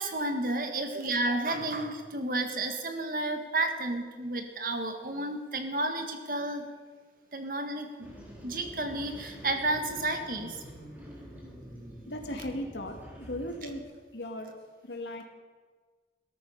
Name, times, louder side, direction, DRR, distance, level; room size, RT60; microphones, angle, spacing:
voice 1, 0.0-6.6 7.3-8.1 8.4-10.6, right 2 dB, 50° right, 5 dB, 1.7 m, -31 dB
sound 1, 8.0-13.8, equal, 10° right, 3.0 m, -46 dB
voice 2, 12.1-13.8 14.1-15.2, left 1 dB, 85° left, 3 dB, 2.4 m, -37 dB
17.0 x 13.5 x 5.7 m, 1.4 s
head